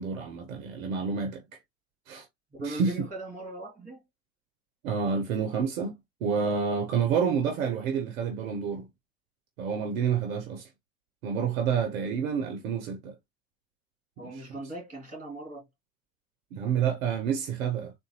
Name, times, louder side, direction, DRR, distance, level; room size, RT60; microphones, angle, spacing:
voice 1, 0.0-1.4 2.1-2.3 2.6-3.1 4.8-8.9 9.6-10.7 11.2-13.1 14.3-14.4 16.5-17.9, right 6 dB, 90° right, 0.6 m, -29 dB
voice 2, 2.5-4.0 14.2-15.6, right 2 dB, 20° right, 2.2 m, -39 dB
3.7 x 2.2 x 2.8 m
hypercardioid pair, 60°, 39 cm